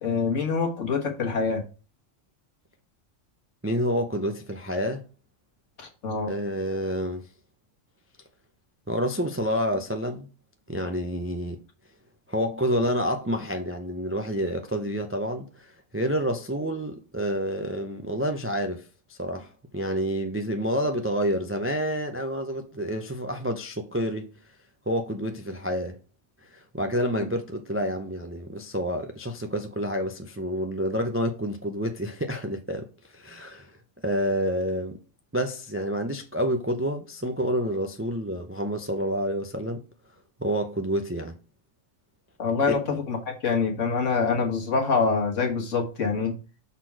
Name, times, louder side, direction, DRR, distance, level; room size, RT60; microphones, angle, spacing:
voice 1, 0.0-1.6 5.8-6.3 42.4-46.3, left 5 dB, 70° left, 1.7 m, -25 dB
voice 2, 3.6-5.0 6.3-7.3 8.9-10.3 10.7-11.6 12.3-24.3 24.9-26.0 26.5-32.9 33.1-33.7 34.0-35.0 35.3-39.8 40.4-41.3 42.7-42.8, equal, 20° right, 0.3 m, -28 dB
6.1 x 4.2 x 4.7 m
omnidirectional pair, 1.3 m